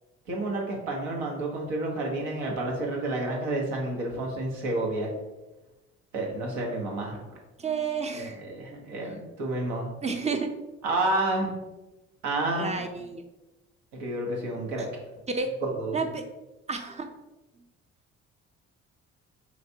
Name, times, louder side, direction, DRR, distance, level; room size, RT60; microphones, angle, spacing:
voice 1, 0.3-5.1 6.1-7.2 8.2-9.9 10.8-11.5 12.2-12.7 14.0-14.9 15.6-16.0, right 2 dB, 90° right, -1 dB, 1.0 m, -30 dB
voice 2, 7.6-8.4 10.0-10.5 12.5-13.2 15.3-15.5 15.9-16.3 16.7-17.1, right 4 dB, 20° right, 6 dB, 0.6 m, -30 dB
4.6 x 3.4 x 2.7 m, 1.0 s
hypercardioid pair, 55°, 32 cm